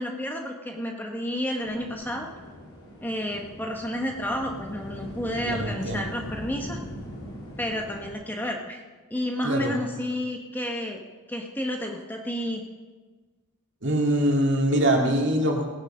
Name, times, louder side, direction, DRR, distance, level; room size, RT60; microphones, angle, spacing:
voice 1, 0.0-2.3 3.0-6.8 7.6-8.8 9.1-11.0 11.3-12.6, equal, 10° left, 2 dB, 0.9 m, -31 dB
sound 1, 1.6-8.1, equal, 85° left, 3.5 m, -40 dB
voice 2, 5.5-6.1 9.4-9.7 13.8-15.7, right 1 dB, 55° right, 0 dB, 2.3 m, -23 dB
18.0 x 8.0 x 5.5 m, 1.3 s
head